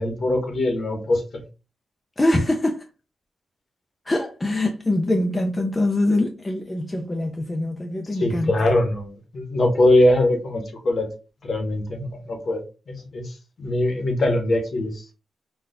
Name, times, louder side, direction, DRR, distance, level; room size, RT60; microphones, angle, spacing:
voice 1, 0.0-1.4 8.1-11.1 11.4-15.0, left 1 dB, 50° left, 0.8 m, -22 dB
voice 2, 2.2-2.8 4.1-8.5, left 1 dB, 20° left, 0.4 m, -23 dB
3.9 x 2.2 x 2.5 m
wide cardioid pair, 140°, 0 cm